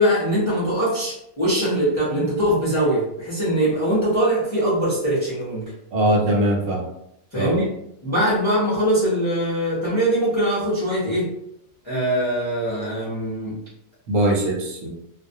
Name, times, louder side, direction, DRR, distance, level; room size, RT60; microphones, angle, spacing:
voice 1, 0.0-5.6 7.3-7.7 8.0-11.3 11.8-13.5, equal, 35° left, -9 dB, 0.4 m, -22 dB
voice 2, 5.9-6.9 7.3-7.6 14.1-14.9, right 1 dB, 70° right, 0 dB, 1.0 m, -22 dB
2.3 x 2.0 x 2.6 m, 0.76 s
omnidirectional pair, 1.5 m